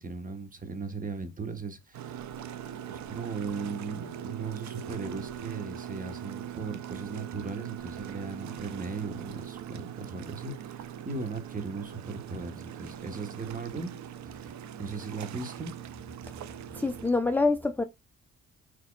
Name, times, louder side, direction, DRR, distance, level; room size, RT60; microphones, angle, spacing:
voice 1, 0.0-2.1 2.9-13.9 14.2-15.8, right 4 dB, 30° right, 1.1 m, -38 dB
sound 1, 1.9-17.1, right 9 dB, 65° right, 0.6 m, -41 dB
voice 2, 16.7-17.8, left 3 dB, 5° left, 0.4 m, -26 dB
4.6 x 4.3 x 2.2 m
cardioid pair, 90°, 30 cm